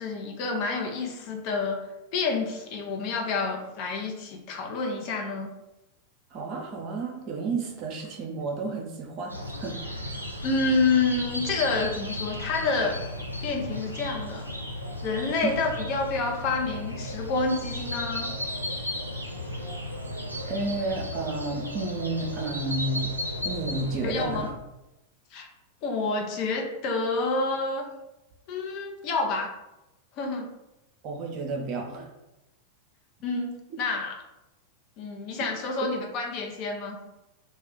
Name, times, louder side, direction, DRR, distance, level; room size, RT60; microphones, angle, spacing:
voice 1, 0.0-1.8 2.1-5.5 10.4-13.0 13.4-14.5 15.0-18.3 24.0-24.5 25.3-25.5 25.8-27.9 28.5-29.5 30.2-30.5 33.2-34.1 35.0-37.0, left 3 dB, 40° left, 1 dB, 0.5 m, -28 dB
voice 2, 6.3-9.8 15.4-15.5 20.5-23.1 23.4-24.5 31.0-32.1 35.8-35.9, right 3 dB, 40° right, 1 dB, 0.6 m, -31 dB
sound 1, 9.3-24.5, left 1 dB, 90° right, 0.4 m, -35 dB
2.4 x 2.1 x 3.5 m, 0.94 s
figure-of-eight pair, 90°, 0 cm